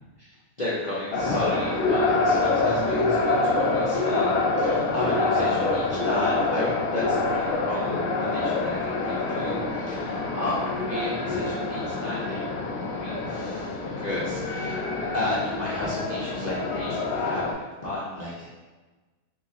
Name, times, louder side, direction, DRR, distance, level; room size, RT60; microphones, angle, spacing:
voice 1, 0.6-14.8 15.1-17.4 17.8-18.5, left 2 dB, 50° left, -8 dB, 0.5 m, -33 dB
sound 1, 1.1-17.5, left 3 dB, 70° left, 1.1 m, -26 dB
4.1 x 2.8 x 3.7 m, 1.3 s
omnidirectional pair, 1.8 m